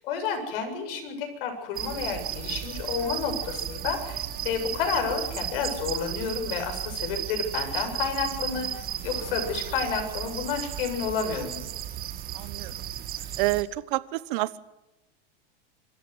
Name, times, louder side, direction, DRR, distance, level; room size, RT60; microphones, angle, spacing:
voice 1, 0.0-8.7 9.0-11.6, left 6 dB, 70° left, 5 dB, 7.7 m, -30 dB
sound 1, 1.8-13.6, right 11 dB, 30° right, 1.6 m, -34 dB
voice 2, 12.3-12.7 13.4-14.6, right 18 dB, 60° right, 17 dB, 1.2 m, -28 dB
25.5 x 14.5 x 8.1 m, 0.98 s
supercardioid pair, 135°, 29 cm